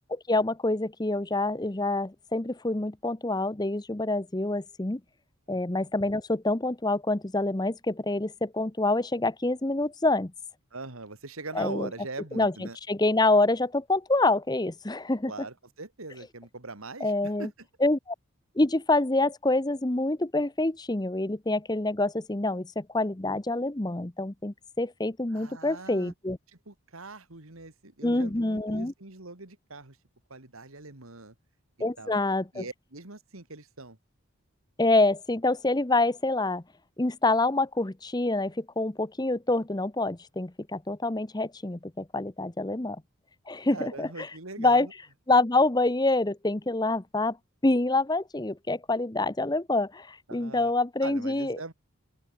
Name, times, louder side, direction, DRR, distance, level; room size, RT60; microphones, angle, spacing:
voice 1, 0.1-5.0 5.5-10.3 11.5-11.9 12.4-12.5 12.9-15.3 17.0-17.5 17.8-18.1 18.6-26.4 28.0-28.9 31.8-32.6 34.8-36.6 37.0-43.0 43.5-44.3 44.6-44.9 45.3-47.4 47.6-51.6, left 2 dB, 20° left, 0.8 m, -26 dB
voice 2, 5.5-5.9 10.7-12.8 15.3-17.7 25.3-26.1 26.7-30.0 30.3-31.3 32.0-32.2 32.5-34.0 43.7-44.9 50.3-50.7 51.0-51.7, right 3 dB, 80° right, 2.6 m, -42 dB
open air
head